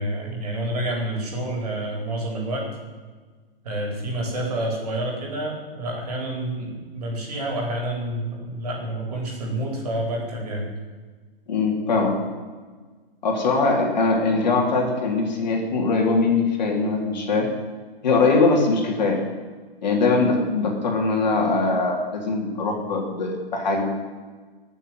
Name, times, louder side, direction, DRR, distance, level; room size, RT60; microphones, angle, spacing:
voice 1, 0.0-2.6 3.6-10.7, right 1 dB, 40° right, 0 dB, 4.5 m, -28 dB
voice 2, 11.5-12.2 13.2-17.5 18.0-19.2 19.8-23.8, left 3 dB, 50° left, 1 dB, 3.5 m, -21 dB
21.5 x 7.3 x 9.3 m, 1.4 s
hypercardioid pair, 180°, 29 cm